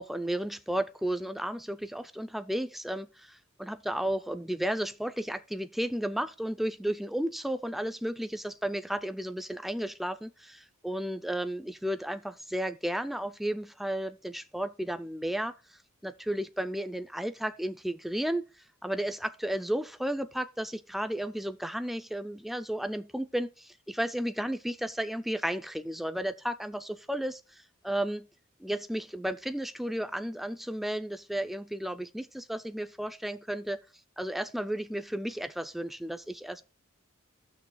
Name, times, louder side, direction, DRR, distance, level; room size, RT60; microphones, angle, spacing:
voice 1, 0.0-28.3 28.6-33.8 34.2-36.6, right 1 dB, ahead, 0.3 m, -33 dB
16.0 x 6.2 x 2.2 m
head